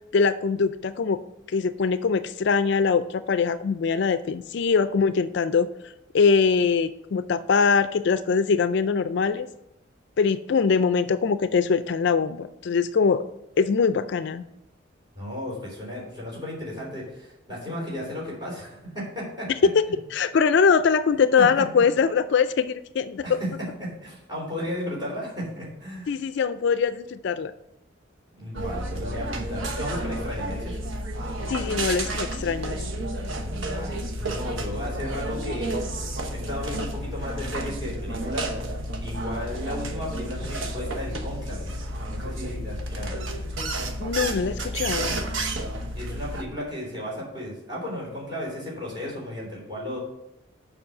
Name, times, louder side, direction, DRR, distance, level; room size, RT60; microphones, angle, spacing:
voice 1, 0.1-1.2 1.5-5.7 6.1-9.5 10.2-13.2 13.6-14.4 20.1-23.4 26.1-27.5 31.5-32.8 44.0-45.2, left 5 dB, 60° left, 12 dB, 0.4 m, -22 dB
voice 2, 15.2-19.5 21.1-21.6 23.2-23.5 23.8-26.1 28.4-30.8 33.3-35.7 36.3-38.5 39.0-41.7 42.1-43.1 46.0-50.0, left 1 dB, 20° right, -4 dB, 3.6 m, -34 dB
sound 1, 28.5-46.4, right 1 dB, 75° right, 1.1 m, -31 dB
7.1 x 5.5 x 6.5 m, 0.84 s
head